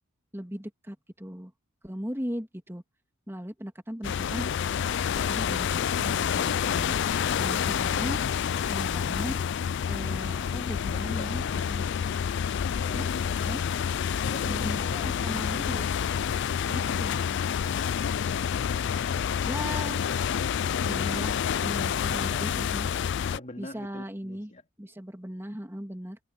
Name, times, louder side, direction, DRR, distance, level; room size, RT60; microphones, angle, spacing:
voice 1, 0.3-1.5 1.8-2.8 3.3-4.5 5.3-7.0 7.3-8.2 8.7-9.4 9.9-11.9 12.9-13.1 13.4-13.6 14.5-15.9 16.7-17.4 19.5-20.1 20.8-22.9 23.6-24.5 24.8-26.2, equal, 10° right, 2.8 m, -38 dB
sound 1, 4.0-23.4, left 8 dB, 55° left, 0.3 m, -28 dB
voice 2, 10.9-11.7 12.8-15.1 23.3-24.6, left 1 dB, 35° left, 3.7 m, -45 dB
head